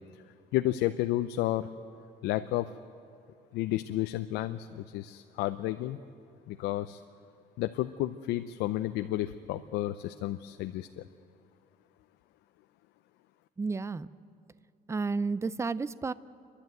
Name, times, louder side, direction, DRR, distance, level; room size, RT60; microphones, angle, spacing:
voice 1, 0.5-1.7 2.2-2.7 3.5-6.0 6.5-7.0 7.6-11.0, left 15 dB, 90° left, 9 dB, 0.6 m, -31 dB
voice 2, 13.6-14.1 14.9-16.1, right 4 dB, 15° right, 18 dB, 0.5 m, -31 dB
30.0 x 11.5 x 9.2 m, 2.3 s
cardioid pair, 110°, 17 cm